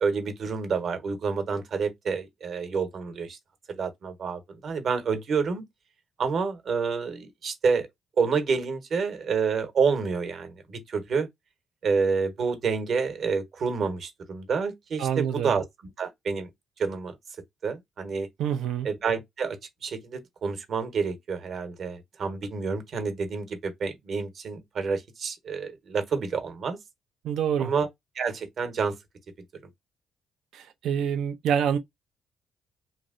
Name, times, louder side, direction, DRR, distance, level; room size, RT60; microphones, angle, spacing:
voice 1, 0.0-3.4 3.7-5.6 6.2-7.9 8.2-11.3 11.8-15.6 16.0-16.5 16.8-17.2 17.6-18.3 18.8-19.6 19.8-26.8 27.6-27.9 28.1-29.0, right 5 dB, 60° right, 0.9 m, -28 dB
voice 2, 15.0-15.5 18.4-18.9 27.2-27.7 30.5-31.8, right 8 dB, 80° right, 0.4 m, -26 dB
2.9 x 2.7 x 2.5 m
cardioid pair, 90°, 0 cm